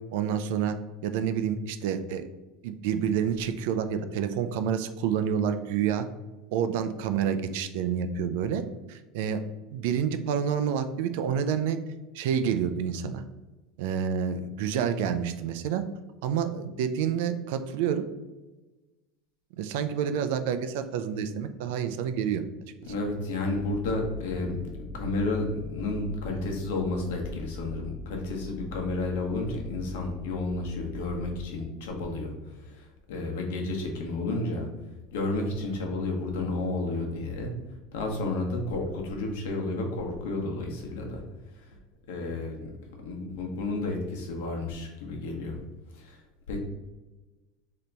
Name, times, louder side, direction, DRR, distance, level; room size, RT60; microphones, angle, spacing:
voice 1, 0.1-2.3 2.6-6.1 6.5-8.6 8.9-9.4 9.7-11.8 12.1-13.2 13.8-15.8 16.2-18.0 19.5-22.4 35.7-35.8, right 8 dB, 70° right, 9 dB, 0.3 m, -28 dB
voice 2, 22.8-34.7 35.1-37.5 37.9-41.2 41.5-41.8 42.1-42.7 43.0-45.6 45.9-46.2 46.5-46.6, left 2 dB, 85° left, 1 dB, 0.9 m, -31 dB
sound 1, 23.5-31.4, left 3 dB, 15° left, 0.4 m, -42 dB
3.4 x 2.8 x 3.9 m, 1.1 s
cardioid pair, 170°, 0 cm